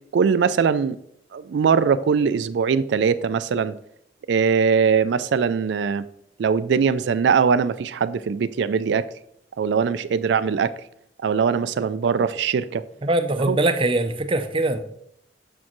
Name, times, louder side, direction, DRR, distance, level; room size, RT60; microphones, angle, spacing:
voice 1, 0.1-1.0 1.3-3.7 4.3-6.0 6.4-9.0 9.6-10.7 11.2-12.8 13.5-13.6, right 6 dB, 75° right, 0.4 m, -21 dB
voice 2, 13.0-14.8, right 2 dB, 30° right, 0.6 m, -22 dB
7.0 x 6.4 x 3.0 m
head